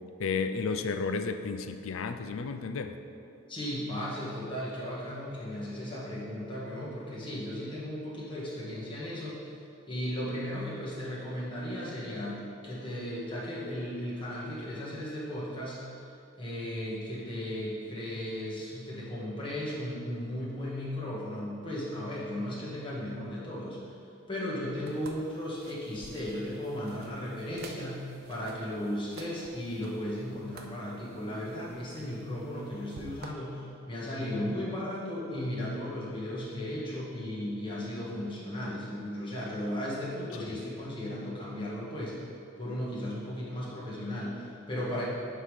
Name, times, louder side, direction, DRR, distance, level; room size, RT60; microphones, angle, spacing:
voice 1, 0.2-2.9 40.5-40.6, left 4 dB, 75° left, 8 dB, 0.4 m, -32 dB
voice 2, 3.5-9.5 9.9-15.8 16.4-23.8 24.3-42.2 42.6-45.0, left 1 dB, 25° left, -7 dB, 1.6 m, -36 dB
sound 1, 24.9-33.3, right 3 dB, 45° right, 0.5 m, -51 dB
9.8 x 3.7 x 4.9 m, 2.6 s
head